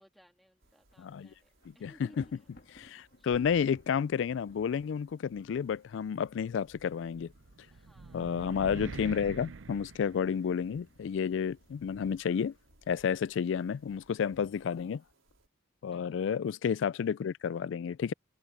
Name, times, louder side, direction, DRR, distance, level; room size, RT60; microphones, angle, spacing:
voice 1, 0.0-1.5 1.7-2.5 3.2-3.3 7.7-8.3 15.9-16.1, equal, ahead, 2.5 m, -61 dB
Thunder, 0.6-1.0 1.3-12.1, left 1 dB, 55° left, 1.8 m, -62 dB
sound 1, 0.6-15.5, right 1 dB, 85° right, 5.2 m, -65 dB
voice 2, 1.0-1.3 1.7-2.2 2.8-7.3 8.1-12.5 12.9-15.0 15.8-18.1, left 7 dB, 70° left, 0.3 m, -31 dB
sound 2, 7.3-10.8, right 4 dB, 70° right, 0.6 m, -44 dB
head